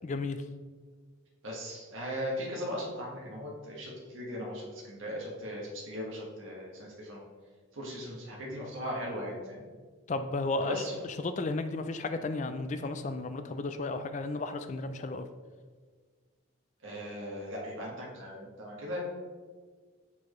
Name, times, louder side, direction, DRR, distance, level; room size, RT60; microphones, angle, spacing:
voice 1, 0.0-0.4 10.1-15.3, left 3 dB, 35° left, 9 dB, 0.3 m, -34 dB
voice 2, 1.4-7.2 7.7-9.6 10.6-10.9 16.8-19.0, equal, 75° right, -3 dB, 1.4 m, -38 dB
6.9 x 4.5 x 3.1 m, 1.5 s
head